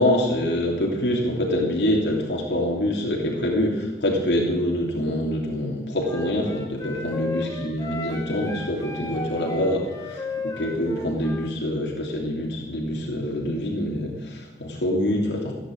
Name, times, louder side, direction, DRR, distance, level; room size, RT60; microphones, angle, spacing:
voice 1, 0.0-15.5, left 1 dB, 85° left, -1 dB, 3.1 m, -25 dB
Wind instrument woodwind instrument, 6.0-11.5, left 2 dB, 20° left, 1.6 m, -34 dB
16.0 x 10.0 x 7.8 m, 1.2 s
head